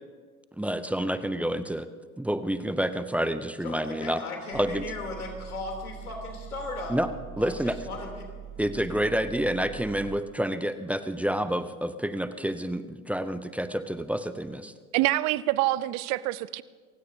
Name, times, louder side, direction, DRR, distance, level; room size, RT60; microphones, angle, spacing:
voice 1, 0.6-1.9 2.2-4.2 4.5-4.8 6.9-7.1 7.4-7.8 8.6-14.7, equal, 5° right, 11 dB, 0.6 m, -28 dB
voice 2, 3.6-7.0 7.4-8.3, left 3 dB, 85° left, 2 dB, 3.3 m, -37 dB
sound 1, 4.5-10.2, right 8 dB, 90° right, 4.5 m, -43 dB
voice 3, 14.9-16.6, right 17 dB, 40° right, 18 dB, 0.6 m, -26 dB
28.0 x 16.0 x 2.8 m, 1.5 s
figure-of-eight pair, 85°, 43 cm